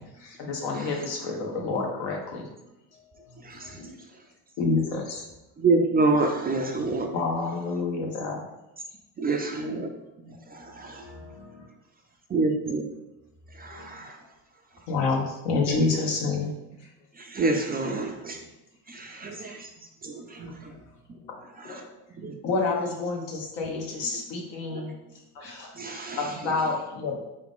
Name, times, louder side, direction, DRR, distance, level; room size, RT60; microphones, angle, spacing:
voice 1, 0.4-2.5 4.6-5.2 7.1-8.4 14.9-16.5 22.4-24.9 26.2-27.2, left 3 dB, 65° left, 0 dB, 1.3 m, -28 dB
voice 2, 3.1-3.9 10.8-11.6 13.7-13.9 19.2-19.3 20.7-20.8 21.6-21.9 25.3-26.0, left 3 dB, 90° left, -1 dB, 1.3 m, -47 dB
voice 3, 5.6-7.1 9.2-9.9 10.3-11.0 12.3-12.8 13.6-14.1 17.2-18.4 18.9-19.7 20.0-20.7 21.7-21.8 22.2-22.3 24.7-24.9 25.8-26.2, right 3 dB, 20° right, 3 dB, 0.4 m, -27 dB
4.2 x 3.6 x 3.6 m, 0.95 s
supercardioid pair, 90°, 47 cm